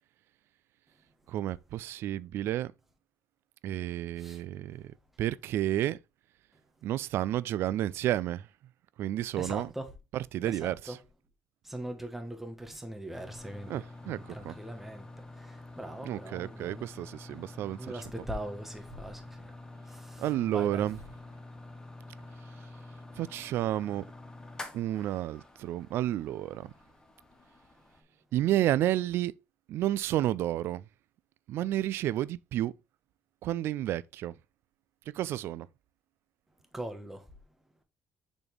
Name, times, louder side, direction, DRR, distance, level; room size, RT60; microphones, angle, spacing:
voice 1, 1.3-2.7 3.6-6.0 6.8-8.5 9.0-9.7 10.1-11.0 13.7-14.5 16.1-17.9 20.2-21.0 23.2-24.0 24.7-26.7 28.3-29.3 29.7-30.8 31.5-32.7 33.4-34.3 35.1-35.7, right 13 dB, 70° right, 0.3 m, -31 dB
voice 2, 9.4-9.9 10.4-11.0 11.6-16.9 17.8-19.5 19.8-20.9 36.7-37.3, right 1 dB, 5° right, 1.2 m, -41 dB
sound 1, 13.1-28.0, left 2 dB, 15° left, 1.0 m, -48 dB
6.9 x 4.1 x 3.3 m
cardioid pair, 135°, 4 cm